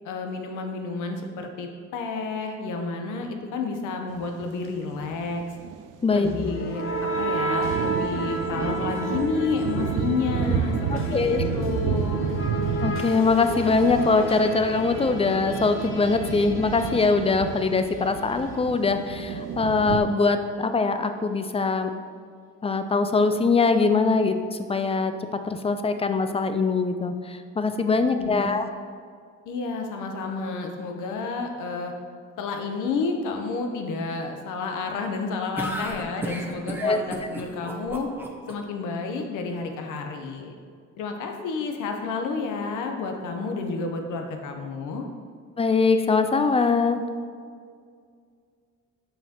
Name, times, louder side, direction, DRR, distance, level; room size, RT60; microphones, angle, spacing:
voice 1, 0.0-5.4 6.1-12.3 27.9-28.5 29.5-31.9 32.4-38.1 38.5-40.5 41.0-45.1, left 4 dB, 90° left, 4 dB, 0.8 m, -30 dB
sound 1, 4.1-4.5 4.9-20.0, right 7 dB, 85° right, 0.5 m, -31 dB
sound 2, 6.3-18.2, right 1 dB, 45° left, 0.9 m, -32 dB
voice 2, 10.9-11.4 12.8-21.9 22.6-25.1 25.4-28.7 36.8-37.0 45.6-47.0, left 4 dB, 20° left, 8 dB, 0.4 m, -22 dB
sound 3, 35.6-38.5, right 1 dB, 5° right, 0.8 m, -33 dB
7.1 x 5.5 x 2.9 m, 2.1 s
cardioid pair, 90°, 30 cm